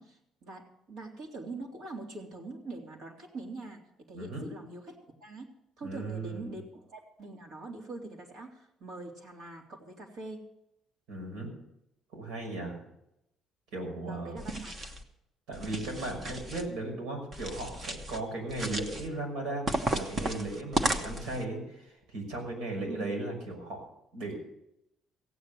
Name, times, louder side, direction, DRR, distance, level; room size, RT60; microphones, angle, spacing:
voice 1, 0.0-3.8 4.1-5.0 5.2-5.5 5.8-10.4 14.0-14.7 22.8-23.1, right 2 dB, 55° right, 0 dB, 2.8 m, -43 dB
voice 2, 4.1-4.5 5.8-6.5 11.1-11.5 12.1-12.8 13.7-14.4 15.5-23.9 24.1-24.4, right 2 dB, 90° right, 1 dB, 5.9 m, -36 dB
sound 1, 14.4-15.0 15.5-16.7 17.3-18.2 18.5-19.1 19.7-21.4, right 2 dB, 25° right, 1.2 m, -34 dB
16.0 x 9.0 x 6.8 m, 0.82 s
cardioid pair, 170°, 0 cm